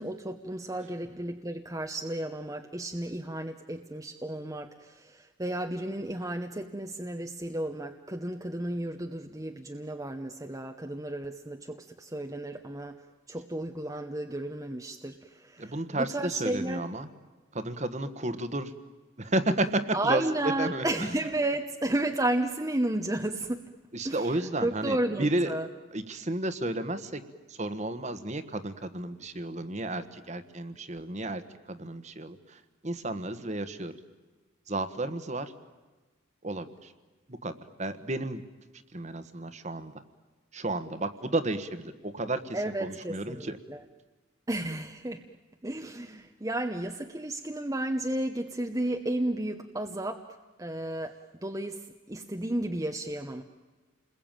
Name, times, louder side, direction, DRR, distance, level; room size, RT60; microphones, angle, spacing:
voice 1, 0.0-13.0 13.3-16.8 19.9-23.6 24.0-25.7 42.5-43.8 44.5-45.2 45.6-50.2 50.6-53.4, right 1 dB, 15° right, 5 dB, 0.9 m, -33 dB
voice 2, 15.6-17.1 17.5-18.7 19.2-21.1 23.9-25.6 25.9-27.2 27.5-33.9 34.7-35.5 36.4-36.9 37.3-38.4 38.9-40.0 40.5-43.6, right 2 dB, 35° right, 11 dB, 1.4 m, -32 dB
29.5 x 21.5 x 9.0 m, 1.3 s
head